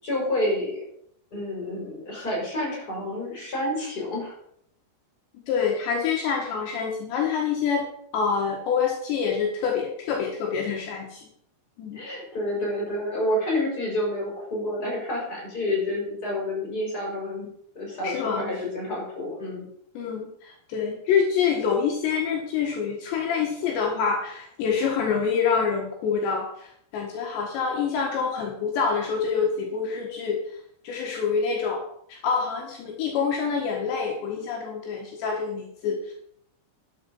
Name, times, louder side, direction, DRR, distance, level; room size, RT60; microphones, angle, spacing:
voice 1, 0.0-0.9 1.3-4.3 11.9-17.5 17.7-19.7, left 1 dB, 20° left, -2 dB, 5.4 m, -29 dB
voice 2, 5.5-7.8 8.1-11.3 11.8-12.0 18.0-18.4 20.0-30.6 30.8-31.8 32.1-36.1, left 6 dB, 70° left, 0 dB, 3.7 m, -26 dB
11.5 x 7.6 x 5.5 m, 0.67 s
omnidirectional pair, 5.3 m